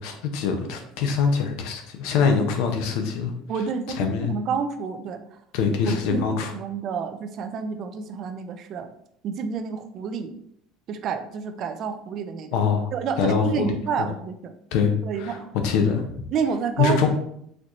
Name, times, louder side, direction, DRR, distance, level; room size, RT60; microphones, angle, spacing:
voice 1, 0.0-3.3 4.0-4.3 5.5-6.5 12.5-12.9 13.2-13.8 14.7-16.2 16.8-17.1, left 6 dB, 75° left, 5 dB, 0.7 m, -23 dB
voice 2, 3.5-5.2 5.9-8.9 9.2-10.3 10.9-12.6 12.9-14.5 15.0-15.5 16.3-17.1, right 6 dB, 50° right, 8 dB, 0.4 m, -29 dB
4.3 x 3.0 x 2.6 m, 0.71 s
supercardioid pair, 110°, 0 cm